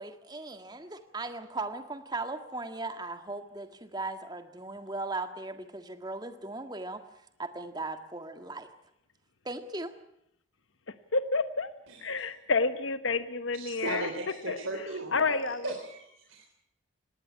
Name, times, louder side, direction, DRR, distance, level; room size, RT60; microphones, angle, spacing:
voice 1, 0.0-7.0 7.4-8.7 9.4-9.9, right 2 dB, 20° right, 8 dB, 1.7 m, -38 dB
voice 2, 10.9-11.7 12.0-14.1 14.5-14.6 15.1-15.7, left 4 dB, 75° left, 12 dB, 1.1 m, -29 dB
voice 3, 13.5-15.4 15.6-16.4, right 2 dB, 85° right, 2 dB, 3.7 m, -37 dB
20.0 x 17.5 x 9.7 m, 0.77 s
head